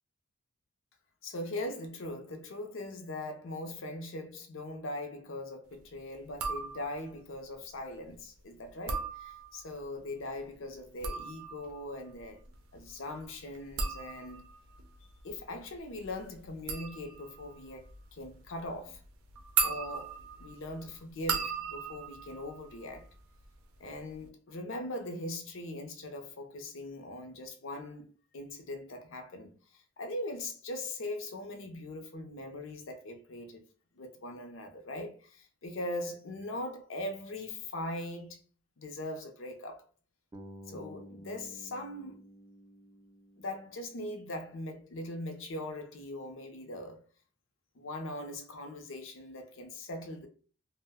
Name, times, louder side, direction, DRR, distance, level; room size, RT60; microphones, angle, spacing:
voice 1, 1.2-12.4 12.7-14.5 15.2-19.0 19.6-23.1 23.8-33.6 34.0-38.4 38.8-39.8 40.7-42.2 43.4-47.0 47.7-50.3, left 1 dB, 60° left, 0.5 m, -41 dB
sound 1, 6.3-7.1 8.7-9.8 10.8-23.5 23.8-24.3, right 5 dB, 85° right, 0.5 m, -38 dB
Bass guitar, 40.3-44.4, equal, 15° right, 0.4 m, -52 dB
2.5 x 2.1 x 3.4 m
head